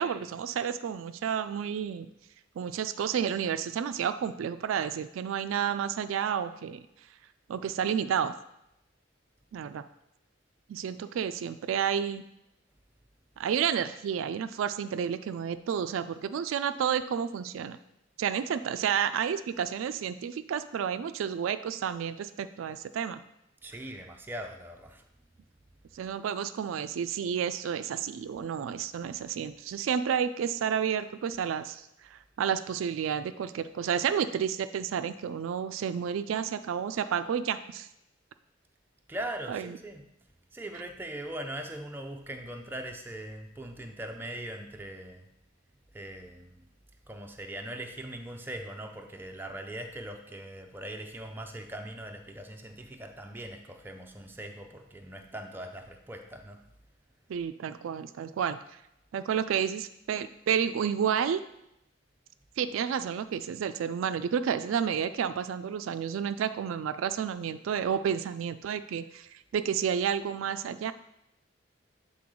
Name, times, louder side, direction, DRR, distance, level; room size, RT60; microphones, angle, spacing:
voice 1, 0.0-2.1 2.6-6.9 7.5-8.3 9.5-9.8 10.7-12.2 13.4-17.8 18.2-23.2 25.9-37.9 39.5-39.8 57.3-58.6 59.1-61.5 62.6-70.9, right 8 dB, 85° right, 12 dB, 0.3 m, -31 dB
voice 2, 23.6-25.0 39.1-40.0 40.5-45.3 45.9-46.7 47.1-56.6, right 1 dB, 10° right, 3 dB, 0.5 m, -41 dB
7.6 x 3.9 x 3.7 m, 0.83 s
head